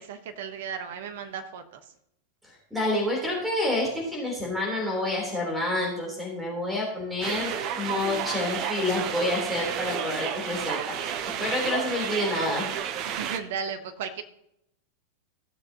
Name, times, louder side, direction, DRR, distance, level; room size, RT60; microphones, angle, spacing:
voice 1, 0.0-1.8 13.2-14.2, right 6 dB, 55° right, 8 dB, 1.2 m, -35 dB
voice 2, 2.7-12.7, left 2 dB, 5° right, -2 dB, 3.7 m, -28 dB
sound 1, 7.2-13.4, right 9 dB, 40° right, 0.9 m, -31 dB
16.0 x 7.6 x 3.0 m, 0.78 s
figure-of-eight pair, 90°, 0 cm